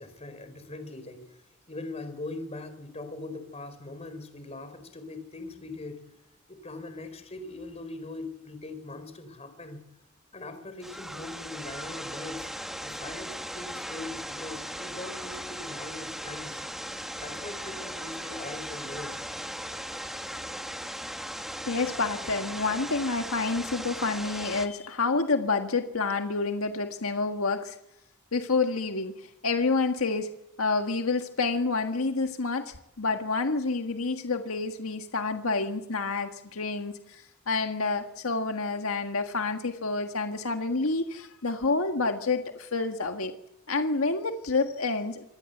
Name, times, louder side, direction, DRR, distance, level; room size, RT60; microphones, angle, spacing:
voice 1, 0.0-1.4 1.7-6.0 6.5-9.8 10.3-12.5 12.8-16.6 17.2-19.2, left 2 dB, 30° left, 9 dB, 4.3 m, -41 dB
sound 1, 10.8-24.7, equal, ahead, 1.6 m, -38 dB
voice 2, 21.7-27.8 28.3-30.3 30.6-43.3 43.7-45.2, left 3 dB, 85° left, 6 dB, 1.6 m, -28 dB
26.0 x 20.0 x 8.0 m, 0.85 s
head